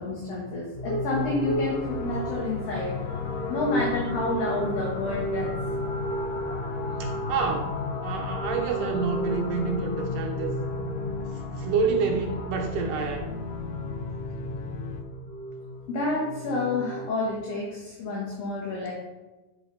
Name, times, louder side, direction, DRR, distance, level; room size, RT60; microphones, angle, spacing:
voice 1, 0.0-3.2 3.5-5.5 15.9-18.9, left 2 dB, 55° left, -3 dB, 2.0 m, -29 dB
sound 1, 0.7-17.1, equal, 30° left, 1.2 m, -34 dB
sound 2, 1.1-15.0, left 6 dB, 80° left, 1.7 m, -37 dB
voice 2, 7.0-7.7 8.0-10.5 11.1-11.2 11.5-13.3, right 5 dB, 75° right, 2 dB, 2.4 m, -28 dB
10.0 x 6.8 x 3.9 m, 1.2 s
omnidirectional pair, 4.1 m